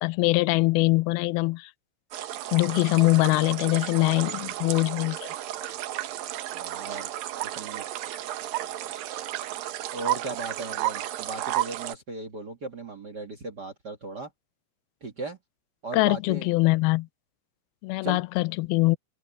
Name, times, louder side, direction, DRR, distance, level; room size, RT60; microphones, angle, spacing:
voice 1, 0.0-1.7 2.5-5.3 15.9-17.1 17.8-19.0, left 22 dB, 85° left, 2.2 m, -23 dB
sound 1, 2.1-11.9, right 14 dB, 70° right, 2.5 m, -33 dB
voice 2, 6.5-7.1 7.4-7.9 9.9-14.3 15.0-15.4 15.8-16.5 18.0-18.2, right 3 dB, 50° right, 1.2 m, -37 dB
omnidirectional pair, 4.8 m